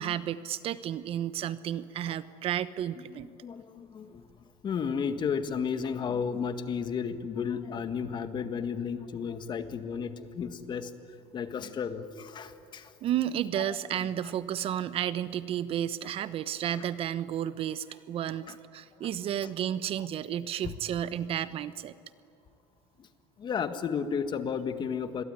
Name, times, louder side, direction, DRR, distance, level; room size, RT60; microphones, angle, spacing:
voice 1, 0.0-3.3 13.0-18.5 18.7-21.9, right 10 dB, 50° right, 14 dB, 1.0 m, -32 dB
voice 2, 3.1-4.3 4.6-10.9 11.3-12.9 13.6-13.8 18.5-18.6 19.0-19.1 20.6-20.8 23.0-23.1 23.4-25.2, left 6 dB, 35° left, 9 dB, 1.9 m, -33 dB
27.5 x 22.0 x 9.7 m, 2.5 s
supercardioid pair, 110°, 13 cm